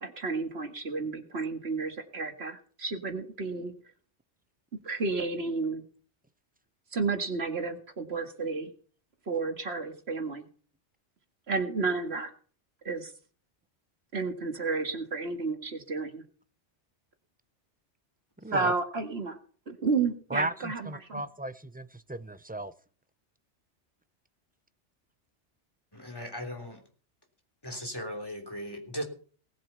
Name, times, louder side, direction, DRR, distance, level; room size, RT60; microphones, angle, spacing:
voice 1, 0.0-3.7 4.8-5.8 6.9-8.7 9.3-10.5 11.5-12.3 12.8-13.1 14.1-16.2 18.5-19.4 19.7-21.2, right 4 dB, 60° right, 5 dB, 2.2 m, -31 dB
voice 2, 18.4-18.7 20.3-22.7, right 1 dB, 10° right, 13 dB, 0.5 m, -36 dB
voice 3, 25.9-26.8 27.6-29.0, equal, 20° left, 3 dB, 3.3 m, -37 dB
19.0 x 7.6 x 5.7 m, 0.43 s
omnidirectional pair, 1.2 m